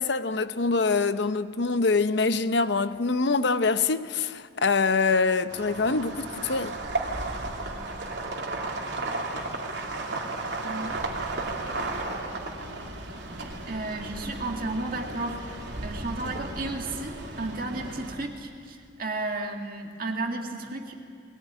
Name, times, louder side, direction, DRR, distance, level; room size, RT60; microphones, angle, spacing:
voice 1, 0.0-6.7, left 4 dB, 65° left, 0.8 m, -24 dB
sound 1, 5.5-18.1, right 2 dB, 65° right, 2.9 m, -34 dB
voice 2, 13.7-15.4 15.8-20.9, right 2 dB, 50° right, 2.0 m, -33 dB
21.0 x 18.5 x 10.0 m
head